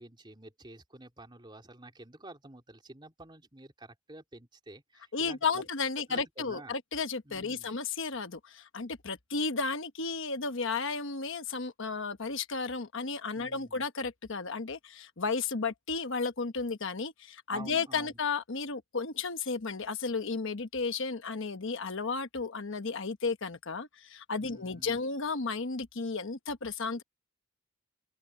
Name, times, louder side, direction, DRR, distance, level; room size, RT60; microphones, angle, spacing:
voice 1, 0.0-5.6 6.1-6.7 7.2-7.7 13.3-13.8 17.5-18.2 24.4-25.0, right 2 dB, 20° right, 3.3 m, -50 dB
voice 2, 5.1-27.0, left 4 dB, 60° left, 1.1 m, -33 dB
open air
head